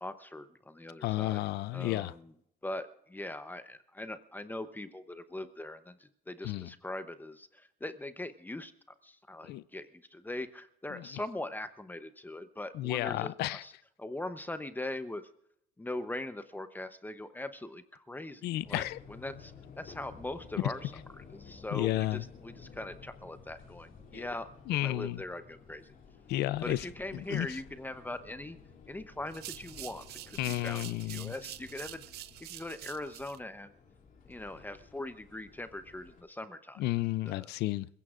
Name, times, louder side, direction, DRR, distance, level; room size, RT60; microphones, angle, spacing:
voice 1, 0.0-1.4 1.7-2.2 2.6-8.7 9.0-13.7 14.0-15.2 15.8-24.5 24.8-25.9 26.6-28.6 28.9-32.0 32.5-33.7 34.3-36.8 37.2-37.5, left 1 dB, 10° left, 0.7 m, -41 dB
voice 2, 1.0-2.1 6.4-6.7 9.4-9.6 10.9-11.1 12.7-13.6 18.4-19.0 21.7-22.2 24.1-24.3 24.7-25.2 26.3-26.9 27.1-27.6 30.4-31.3 36.8-37.9, left 16 dB, 80° left, 0.5 m, -32 dB
sound 1, 18.6-36.2, left 5 dB, 55° left, 2.7 m, -54 dB
sound 2, 29.3-33.4, right 15 dB, 75° right, 0.6 m, -46 dB
27.0 x 16.0 x 2.5 m
cardioid pair, 110°, 17 cm